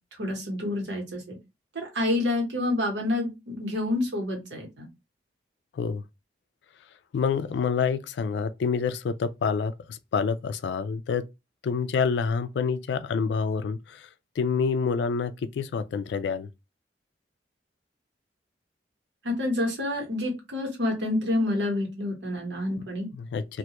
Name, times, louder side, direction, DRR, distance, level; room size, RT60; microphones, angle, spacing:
voice 1, 0.2-1.4 1.7-4.9 19.2-23.1, left 2 dB, 85° right, 1.0 m, -28 dB
voice 2, 7.1-11.3 11.6-14.1 14.4-16.5 23.1-23.6, left 5 dB, 75° left, 0.3 m, -27 dB
2.2 x 2.1 x 2.8 m
head